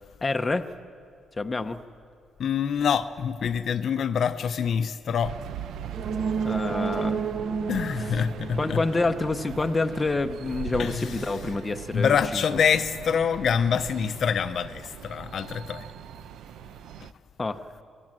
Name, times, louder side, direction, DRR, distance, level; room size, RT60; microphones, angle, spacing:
voice 1, 0.2-0.7 1.4-1.8 6.4-7.2 8.0-8.2 8.6-12.6 17.4-17.7, left 3 dB, 15° left, 0.7 m, -28 dB
voice 2, 2.4-5.3 7.7-8.8 10.8-11.1 11.9-15.8, left 7 dB, 50° left, 0.7 m, -25 dB
sound 1, 5.2-17.1, right 9 dB, 75° right, 0.6 m, -40 dB
sound 2, 5.9-9.6 9.9-10.0, right 5 dB, 35° right, 0.8 m, -31 dB
26.5 x 20.0 x 7.6 m
cardioid pair, 175°, 0 cm